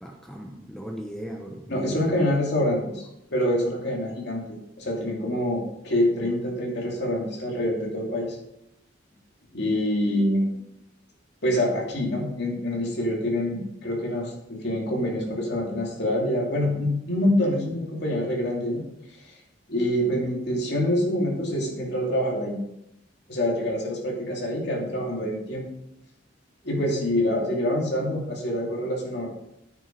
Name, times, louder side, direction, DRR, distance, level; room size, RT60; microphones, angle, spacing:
voice 1, 0.0-2.1, equal, 5° left, 1 dB, 0.8 m, -37 dB
voice 2, 1.7-4.4 4.8-8.4 9.5-10.5 11.4-18.8 19.3-19.4 19.7-22.6 23.3-25.7 26.6-29.3, left 1 dB, 60° left, -2 dB, 2.8 m, -26 dB
9.3 x 7.0 x 5.3 m, 0.84 s
head